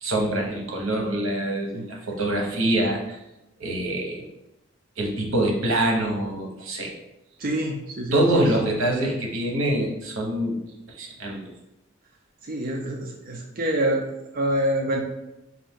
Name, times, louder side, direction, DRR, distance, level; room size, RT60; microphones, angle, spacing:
voice 1, 0.0-3.2 3.6-4.3 5.0-6.9 8.1-10.6 11.0-11.4, right 1 dB, 75° right, 0 dB, 0.9 m, -25 dB
voice 2, 7.4-8.4 12.5-15.0, right 1 dB, 45° right, 1 dB, 0.4 m, -26 dB
4.0 x 2.6 x 3.6 m, 0.90 s
head